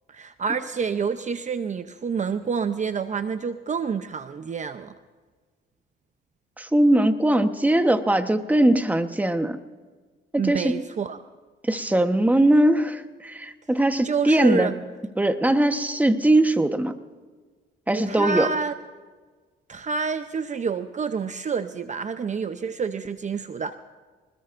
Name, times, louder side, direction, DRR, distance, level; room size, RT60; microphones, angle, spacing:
voice 1, 0.1-4.9 10.4-11.2 14.0-14.7 17.9-18.7 19.7-23.7, right 5 dB, 35° right, 9 dB, 0.7 m, -28 dB
voice 2, 6.6-9.6 10.3-10.8 11.7-14.7 15.2-16.9 17.9-18.5, right 1 dB, 10° right, 8 dB, 1.1 m, -20 dB
25.5 x 20.5 x 2.6 m, 1.4 s
cardioid pair, 90°, 20 cm